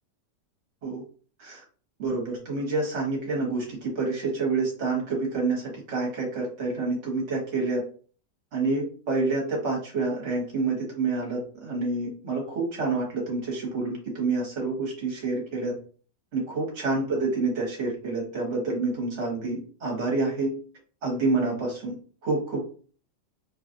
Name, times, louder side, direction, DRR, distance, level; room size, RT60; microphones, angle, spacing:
voice 1, 2.0-7.8 8.5-15.8 16.3-20.5 21.0-21.9 22.2-22.6, right 3 dB, 45° right, -2 dB, 1.3 m, -28 dB
3.0 x 2.4 x 2.6 m, 0.40 s
omnidirectional pair, 1.9 m